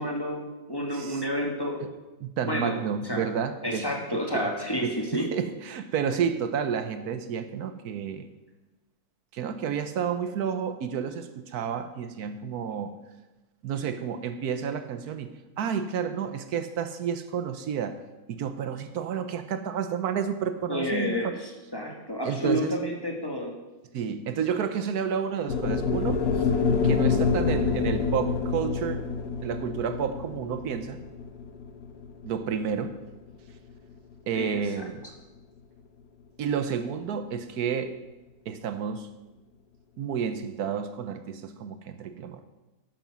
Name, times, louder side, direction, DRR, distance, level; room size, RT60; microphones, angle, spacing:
voice 1, 0.0-1.8 2.4-2.8 3.0-3.2 3.6-5.3 20.6-23.5 34.3-34.8, equal, 15° left, 0 dB, 1.8 m, -30 dB
voice 2, 2.2-3.9 4.1-4.5 4.8-8.3 9.3-13.0 13.6-18.0 18.3-21.4 22.2-22.7 23.9-26.5 26.8-29.0 29.4-31.0 32.2-33.0 34.3-35.0 36.4-38.0 38.5-39.1 40.0-42.4, right 7 dB, 75° right, 10 dB, 1.3 m, -30 dB
sound 1, 25.5-33.7, left 5 dB, 70° left, 1.4 m, -27 dB
11.0 x 9.0 x 6.1 m, 1.1 s
omnidirectional pair, 1.7 m